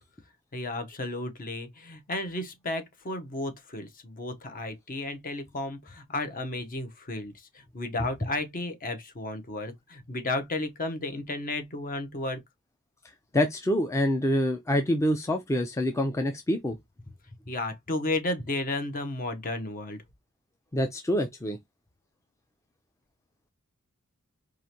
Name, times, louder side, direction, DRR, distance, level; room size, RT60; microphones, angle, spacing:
voice 1, 0.5-12.4 17.5-20.0, left 2 dB, 40° left, 0.9 m, -33 dB
voice 2, 13.3-16.8 20.7-21.6, left 1 dB, 15° left, 0.4 m, -26 dB
4.8 x 2.5 x 2.8 m
head